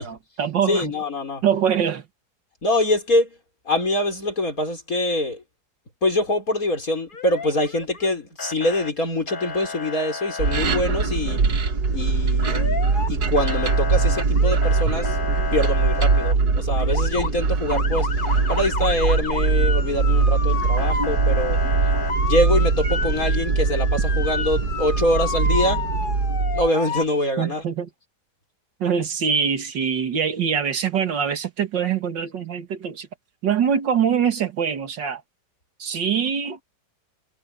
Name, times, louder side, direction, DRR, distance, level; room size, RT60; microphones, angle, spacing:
voice 1, 0.0-0.9 1.4-2.0 27.4-27.9 28.8-33.1 33.4-35.2 35.8-36.6, right 7 dB, 85° right, 2.4 m, -23 dB
voice 2, 0.7-1.4 2.6-3.4 3.7-5.4 6.0-11.4 11.9-18.1 18.5-21.6 22.2-25.8 26.5-27.6, left 1 dB, 50° left, 6.2 m, -24 dB
Motor vehicle (road) / Siren, 7.1-8.1 8.4-8.9 9.3-10.6 12.4-13.1 13.4-16.3 16.8-17.3 17.7-27.0, left 4 dB, 30° left, 1.3 m, -31 dB
sound 1, 10.4-26.7, right 4 dB, 60° right, 2.0 m, -22 dB
omnidirectional pair, 1.9 m